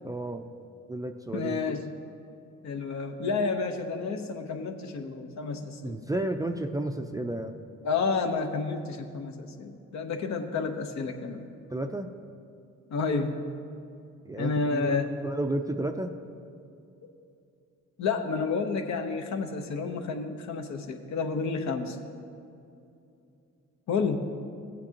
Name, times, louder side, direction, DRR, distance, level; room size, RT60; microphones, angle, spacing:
voice 1, 0.0-0.5 0.9-1.8 5.8-7.6 11.7-12.1 14.2-16.1, right 1 dB, 10° right, 5 dB, 0.4 m, -32 dB
voice 2, 1.3-2.0 2.6-6.0 7.8-11.5 12.9-13.4 14.4-15.1 18.0-22.0 23.9-24.3, left 4 dB, 65° left, 5 dB, 1.0 m, -30 dB
16.0 x 8.7 x 2.9 m, 2.6 s
cardioid pair, 90°, 30 cm